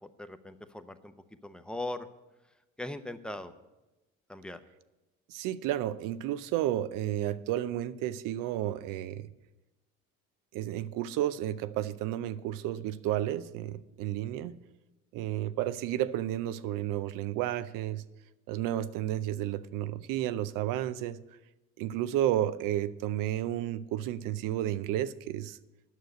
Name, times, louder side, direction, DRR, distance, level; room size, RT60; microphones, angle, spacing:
voice 1, 0.0-1.1 1.4-2.1 2.8-3.5 4.3-4.6, left 1 dB, 5° left, 9 dB, 0.8 m, -39 dB
voice 2, 5.3-9.3 10.5-14.5 15.1-18.0 18.5-21.2 21.8-25.6, right 12 dB, 80° right, 14 dB, 0.6 m, -32 dB
9.4 x 6.4 x 7.9 m, 1.0 s
supercardioid pair, 70°, 32 cm